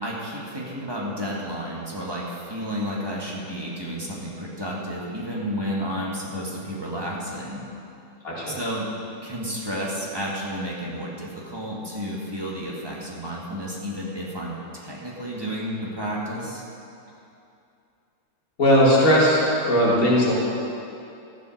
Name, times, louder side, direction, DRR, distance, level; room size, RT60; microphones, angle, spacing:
voice 1, 0.0-7.6 8.5-8.9 9.2-16.6, equal, 15° right, -4 dB, 1.8 m, -31 dB
voice 2, 8.2-8.6 18.6-20.3, equal, 55° left, -7 dB, 3.5 m, -18 dB
14.5 x 7.5 x 6.5 m, 2.6 s
omnidirectional pair, 1.8 m